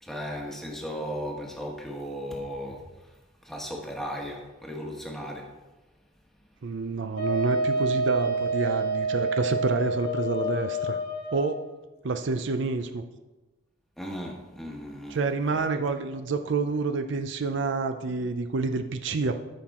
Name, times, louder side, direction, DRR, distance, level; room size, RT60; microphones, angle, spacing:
voice 1, 0.0-5.5 14.0-15.6, equal, ahead, -1 dB, 1.2 m, -36 dB
voice 2, 6.6-11.0 11.3-11.7 12.0-13.0 15.1-19.5, right 4 dB, 60° right, 8 dB, 0.5 m, -28 dB
Wind instrument woodwind instrument, 7.2-11.6, right 2 dB, 50° left, 1.3 m, -28 dB
13.0 x 5.9 x 3.6 m, 1.1 s
head